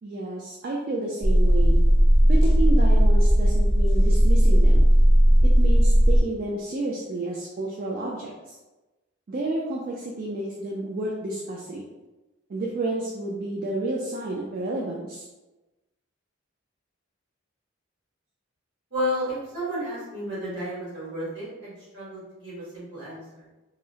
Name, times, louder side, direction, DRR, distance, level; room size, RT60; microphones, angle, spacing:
voice 1, 0.0-1.8 2.3-4.8 5.4-8.6 9.3-11.9 12.5-15.3, right 2 dB, 45° right, -3 dB, 0.3 m, -31 dB
sound 1, 1.2-6.2, equal, 30° left, 0.3 m, -17 dB
voice 2, 18.9-23.4, equal, 65° right, -9 dB, 1.5 m, -32 dB
2.7 x 2.0 x 2.7 m, 1.1 s
head